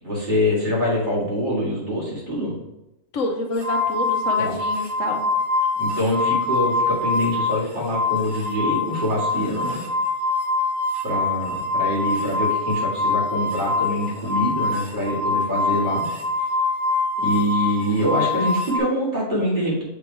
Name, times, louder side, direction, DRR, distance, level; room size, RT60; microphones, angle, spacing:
voice 1, 0.0-2.5 4.4-4.6 5.8-9.8 11.0-16.1 17.2-19.8, equal, 35° right, -6 dB, 2.2 m, -24 dB
voice 2, 3.1-5.3, left 2 dB, 70° left, 3 dB, 1.1 m, -27 dB
sound 1, 3.6-7.6 7.9-18.8, left 3 dB, 60° right, 1.4 m, -24 dB
6.9 x 3.4 x 4.6 m, 0.94 s
omnidirectional pair, 1.4 m